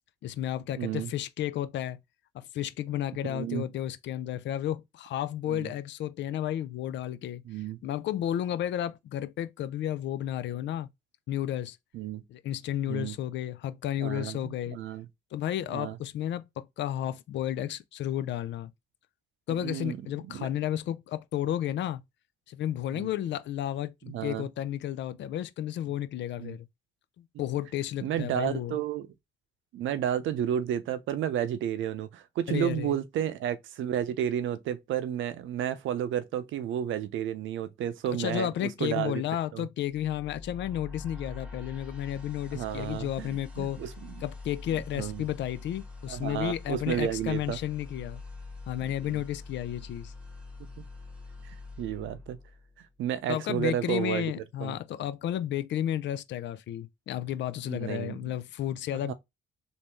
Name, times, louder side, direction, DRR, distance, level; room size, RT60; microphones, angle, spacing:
voice 1, 0.2-2.0 2.3-7.4 7.8-10.9 11.3-11.8 12.3-14.8 15.3-18.7 19.5-22.0 22.5-26.7 27.2-28.8 32.5-33.0 38.1-43.8 44.2-48.2 48.7-50.1 53.3-59.1, left 11 dB, 65° left, 0.4 m, -32 dB
voice 2, 0.8-1.1 3.3-3.6 5.5-5.7 7.4-7.8 11.9-12.2 12.9-13.2 14.0-15.1 15.7-16.0 19.6-20.0 20.3-20.5 22.9-23.1 24.0-24.5 26.4-26.6 28.0-29.1 29.7-39.2 39.5-39.7 42.5-44.2 44.7-45.2 46.1-47.6 48.8-49.2 51.4-52.4 53.0-54.3 54.6-54.8 57.6-58.2 59.1-59.2, right 10 dB, 80° right, 0.6 m, -32 dB
sound 1, 39.8-52.9, left 3 dB, 5° right, 1.2 m, -44 dB
3.4 x 2.6 x 3.0 m
cardioid pair, 90°, 20 cm